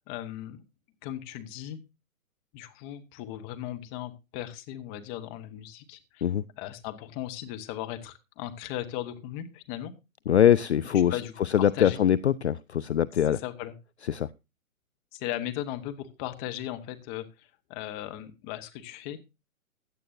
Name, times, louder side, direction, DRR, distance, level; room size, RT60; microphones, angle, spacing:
voice 1, 0.1-0.6 1.0-1.8 2.5-6.3 6.6-9.9 11.1-12.0 13.3-13.7 15.1-19.2, left 12 dB, 15° left, 7 dB, 1.1 m, -37 dB
voice 2, 10.3-13.4 14.1-14.3, left 10 dB, 50° left, 17 dB, 0.5 m, -23 dB
16.0 x 10.5 x 2.6 m, 0.26 s
figure-of-eight pair, 135°, 44 cm